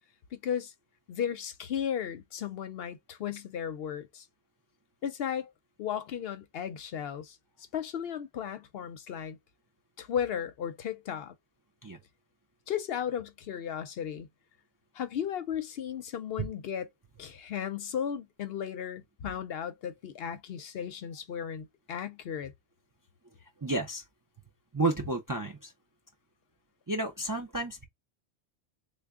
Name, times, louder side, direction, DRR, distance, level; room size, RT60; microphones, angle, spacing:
voice 1, 0.3-0.7 1.1-4.3 5.0-5.5 5.8-7.4 7.7-9.4 10.0-11.3 12.7-14.3 14.9-16.9 17.2-22.5, left 8 dB, 65° left, 0.8 m, -35 dB
voice 2, 23.6-24.0 24.7-25.7 26.9-27.9, right 2 dB, 25° right, 0.4 m, -31 dB
3.4 x 2.2 x 3.6 m
omnidirectional pair, 1.1 m